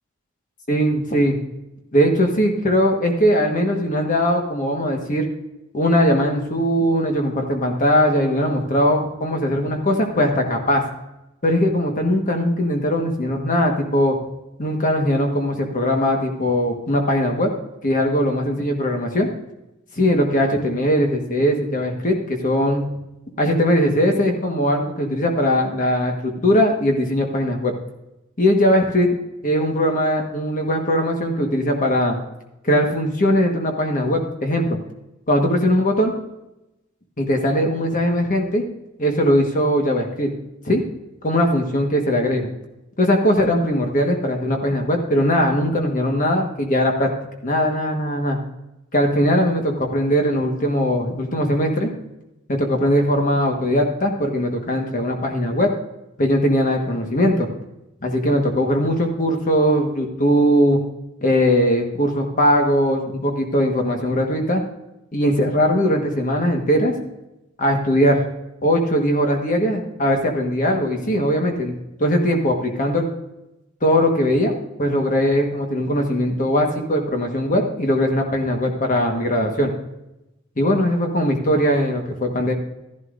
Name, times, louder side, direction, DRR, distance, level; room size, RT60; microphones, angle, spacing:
voice 1, 0.7-1.4 1.9-5.3 5.7-10.8 11.4-14.2 14.6-17.5 17.8-19.3 20.0-22.9 23.4-27.7 28.4-29.1 29.4-32.2 32.6-34.8 35.3-36.1 37.2-38.6 39.0-40.3 40.6-40.8 41.2-42.5 43.0-47.1 47.4-48.4 48.9-51.9 52.5-55.7 56.2-57.5 58.0-60.8 61.2-64.6 65.1-66.9 67.6-68.2 68.6-73.1 73.8-79.7 80.6-82.5, equal, 40° left, 2 dB, 1.4 m, -20 dB
14.0 x 11.5 x 2.6 m, 0.93 s
head